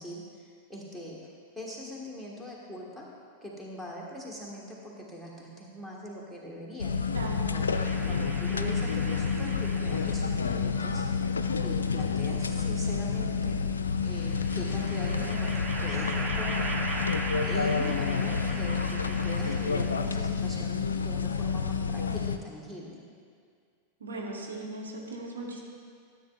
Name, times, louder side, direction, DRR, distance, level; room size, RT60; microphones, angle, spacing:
voice 1, 0.0-3.1 3.4-7.0 7.5-11.1 11.6-13.6 14.0-15.5 15.8-16.7 17.4-23.0, equal, 5° right, -3 dB, 1.6 m, -41 dB
sound 1, 6.8-22.4, left 5 dB, 75° left, 0.3 m, -29 dB
voice 2, 7.1-7.6 24.0-25.6, right 2 dB, 70° right, -1 dB, 1.1 m, -38 dB
sound 2, 7.7-10.4 11.5-12.5 14.1-20.1, right 2 dB, 25° right, 1.0 m, -39 dB
13.5 x 8.1 x 2.5 m, 2.2 s
figure-of-eight pair, 90°, 0 cm